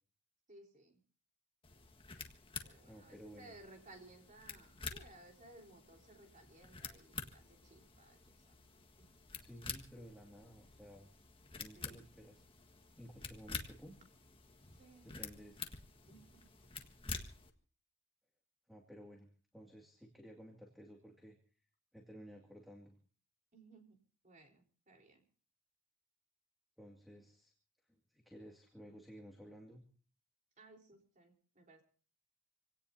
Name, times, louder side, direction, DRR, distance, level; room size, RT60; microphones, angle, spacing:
voice 1, 0.5-1.0 2.6-8.5 9.0-9.1 11.7-12.0 14.7-15.2 16.1-16.5 23.5-25.2 30.6-31.8, right 2 dB, 40° right, 2 dB, 4.1 m, -60 dB
sound 1, 1.6-17.5, left 4 dB, 25° left, 1.6 m, -49 dB
voice 2, 2.9-3.5 9.4-11.1 11.6-12.4 12.9-14.0 15.0-15.7 18.7-19.3 19.5-21.4 21.9-23.0 26.8-27.5 27.9-29.8, equal, ahead, 1 dB, 2.3 m, -55 dB
27.0 x 17.5 x 2.8 m, 0.40 s
head